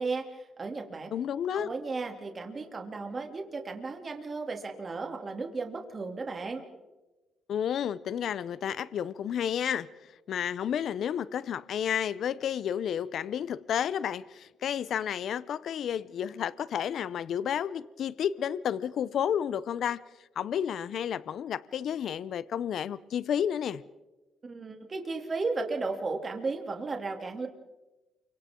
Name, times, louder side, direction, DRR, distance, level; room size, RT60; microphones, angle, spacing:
voice 1, 0.0-1.1 1.5-6.6 24.4-27.5, right 3 dB, 35° right, 2.7 m, -34 dB
voice 2, 1.1-1.7 7.5-20.0 20.4-23.8, left 9 dB, 65° left, 0.6 m, -31 dB
29.0 x 25.0 x 3.7 m
cardioid pair, 90°, 0 cm